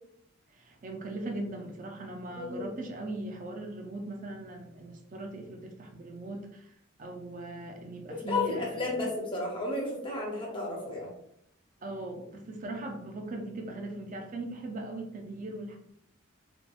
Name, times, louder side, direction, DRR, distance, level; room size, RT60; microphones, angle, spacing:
voice 1, 0.5-6.7 7.0-8.9 11.8-15.8, right 2 dB, 40° right, 3 dB, 0.4 m, -39 dB
voice 2, 2.4-2.7 8.1-11.1, left 2 dB, 25° left, -2 dB, 0.6 m, -33 dB
2.8 x 2.2 x 2.3 m, 0.73 s
head